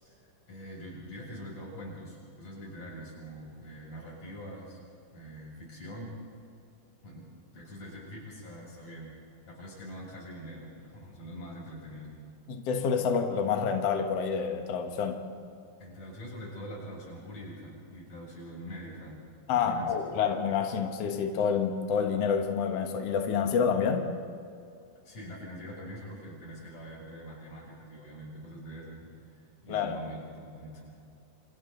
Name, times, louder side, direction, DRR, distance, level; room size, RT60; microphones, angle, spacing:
voice 1, 0.0-4.8 5.1-6.2 7.0-9.2 9.5-12.1 15.8-19.2 19.5-20.1 25.0-29.2 29.6-30.9, equal, 40° left, -4 dB, 8.1 m, -44 dB
voice 2, 12.5-15.2 19.5-24.1 29.7-30.0, left 6 dB, 85° left, 4 dB, 1.3 m, -28 dB
29.0 x 26.5 x 4.0 m, 2.4 s
omnidirectional pair, 5.3 m